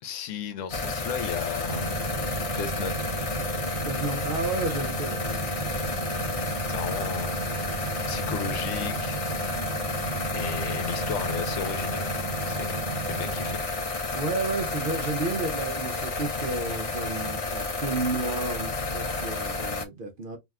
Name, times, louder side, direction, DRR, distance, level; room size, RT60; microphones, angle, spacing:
voice 1, 0.0-2.2 2.5-3.1 6.7-9.4 10.3-12.1 12.4-13.7, left 8 dB, 85° left, 1.0 m, -35 dB
sound 1, 0.7-19.9, left 3 dB, 60° left, 0.3 m, -31 dB
sound 2, 1.7-13.6, right 4 dB, 75° right, 1.1 m, -35 dB
voice 2, 3.8-5.4 14.1-20.4, right 3 dB, 55° right, 0.7 m, -31 dB
2.7 x 2.2 x 3.4 m
omnidirectional pair, 1.3 m